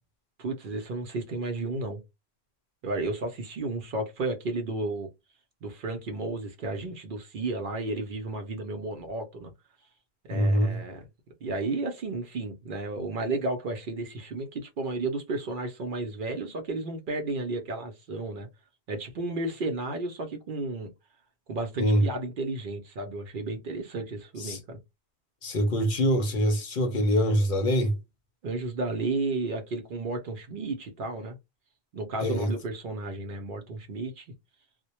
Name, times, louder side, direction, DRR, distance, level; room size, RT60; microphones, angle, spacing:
voice 1, 0.4-2.0 2.8-5.1 5.6-9.5 10.2-11.0 11.4-18.5 18.9-20.9 21.5-24.8 28.4-31.4 31.9-34.3, right 2 dB, 60° right, 0.7 m, -33 dB
voice 2, 10.3-10.8 21.8-22.0 24.4-24.6 25.4-28.0 32.2-32.5, equal, 60° left, 0.7 m, -24 dB
2.1 x 2.1 x 2.8 m
omnidirectional pair, 1.1 m